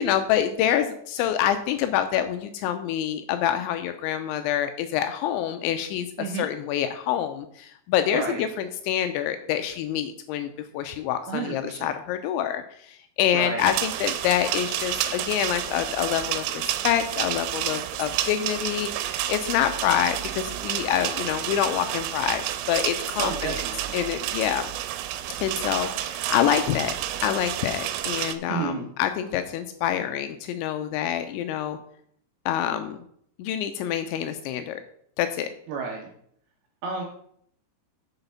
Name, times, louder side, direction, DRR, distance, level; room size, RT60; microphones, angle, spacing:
voice 1, 0.0-6.1 6.3-23.6 23.9-24.6 25.4-26.9 27.2-31.8 32.5-33.0 33.4-34.8 35.2-35.5, left 10 dB, 85° left, 8 dB, 2.7 m, -26 dB
voice 2, 8.1-8.5 11.3-11.9 13.3-13.7 23.2-24.0 28.5-28.9 35.7-36.1 36.8-37.0, right 5 dB, 75° right, 1 dB, 2.4 m, -31 dB
sound 1, 13.6-28.3, right 12 dB, 90° right, 3.2 m, -30 dB
7.9 x 7.0 x 5.5 m, 0.67 s
omnidirectional pair, 5.7 m